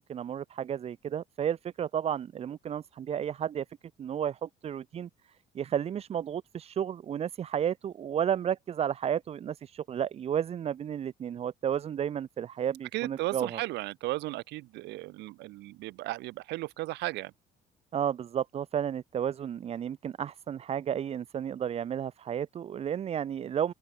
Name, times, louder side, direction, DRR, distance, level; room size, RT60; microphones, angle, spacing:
voice 1, 0.0-3.6 4.0-5.1 5.5-13.6 17.9-23.7, right 9 dB, 35° right, 0.6 m, -32 dB
voice 2, 12.9-17.3, right 19 dB, 80° right, 0.7 m, -35 dB
open air
cardioid pair, 135°, 18 cm